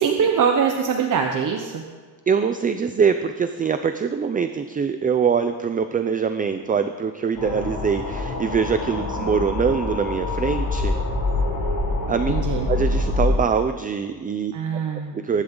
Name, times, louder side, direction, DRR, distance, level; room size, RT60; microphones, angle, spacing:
voice 1, 0.0-1.8 12.3-12.7 14.5-15.2, right 6 dB, 55° right, 3 dB, 1.2 m, -22 dB
voice 2, 2.3-11.0 12.1-12.3 12.7-14.5 15.1-15.4, right 6 dB, 20° right, 9 dB, 0.5 m, -23 dB
sound 1, 7.3-13.4, left 2 dB, 75° left, 5.0 m, -25 dB
22.5 x 11.5 x 3.9 m, 1.5 s
cardioid pair, 170°, 38 cm